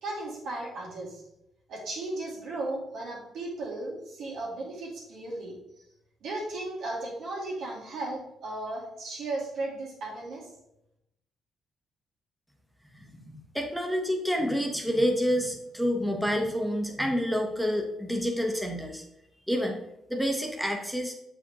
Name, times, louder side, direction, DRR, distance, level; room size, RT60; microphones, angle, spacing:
voice 1, 0.0-1.2 1.7-5.6 6.2-10.5, right 2 dB, 80° right, -4 dB, 2.2 m, -35 dB
voice 2, 12.9-19.0 19.5-19.8 20.1-21.1, equal, ahead, 1 dB, 1.0 m, -28 dB
6.9 x 4.9 x 3.0 m, 0.83 s
cardioid pair, 90°, 0 cm